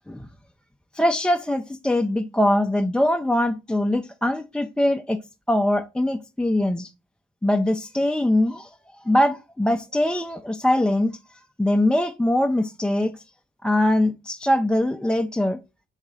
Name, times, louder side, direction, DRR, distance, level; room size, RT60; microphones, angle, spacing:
voice 1, 0.9-5.2 5.5-6.9 7.4-8.7 9.0-11.2 11.6-13.2 13.6-15.6, left 1 dB, 5° left, 0.4 m, -22 dB
3.9 x 2.8 x 4.7 m
cardioid pair, 90°, 20 cm